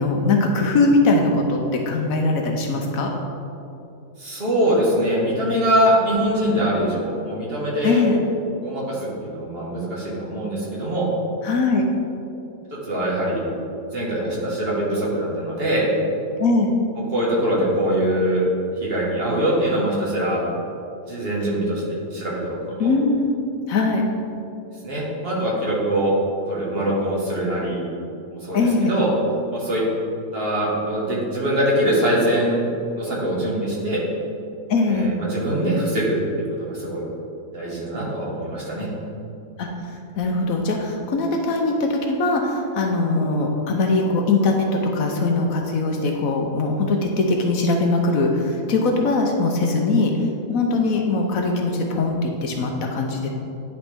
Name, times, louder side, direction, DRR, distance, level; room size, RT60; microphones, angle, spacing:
voice 1, 0.0-3.1 7.8-8.2 11.4-11.8 16.4-16.7 22.8-23.4 23.7-24.0 28.5-28.9 34.7-35.1 39.6-39.7 40.2-44.7 44.9-50.1 50.5-53.3, left 3 dB, 70° left, 1 dB, 1.0 m, -21 dB
voice 2, 4.2-8.0 8.6-11.1 12.7-13.5 13.9-15.9 17.1-18.4 18.8-20.4 21.1-22.9 24.8-26.1 26.5-27.9 28.4-28.6 28.9-29.1 29.5-29.8 30.3-34.0 34.8-37.1 37.5-38.9, right 1 dB, 40° right, -6 dB, 1.5 m, -23 dB
10.0 x 4.0 x 3.4 m, 2.8 s
omnidirectional pair, 1.6 m